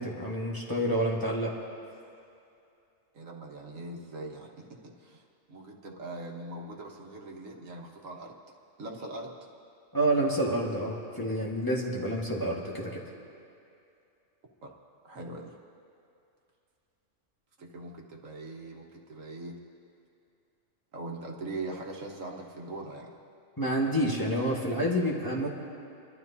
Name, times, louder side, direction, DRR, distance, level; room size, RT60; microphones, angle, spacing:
voice 1, 0.0-1.5 9.9-13.0 23.6-25.5, right 1 dB, 15° left, -4 dB, 1.6 m, -28 dB
voice 2, 3.1-4.5 4.8-5.2 5.5-8.4 8.8-9.4 14.6-14.8 15.0-15.5 17.6-19.6 20.9-23.1, right 2 dB, 75° right, 0 dB, 1.6 m, -41 dB
29.5 x 12.0 x 2.8 m, 2.6 s
omnidirectional pair, 1.4 m